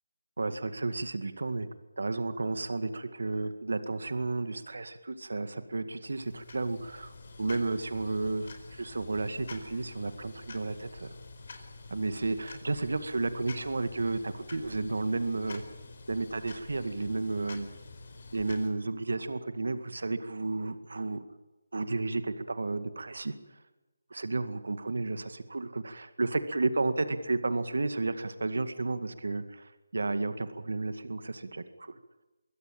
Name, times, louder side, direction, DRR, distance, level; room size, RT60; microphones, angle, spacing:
voice 1, 0.4-1.7 2.0-11.1 11.9-15.6 16.1-17.7 18.3-21.2 21.7-23.3 24.1-32.0, right 3 dB, 75° right, 11 dB, 2.1 m, -32 dB
sound 1, 6.0-18.7, left 3 dB, 50° left, 4.5 m, -48 dB
23.5 x 16.5 x 8.9 m, 1.1 s
figure-of-eight pair, 165°, 0 cm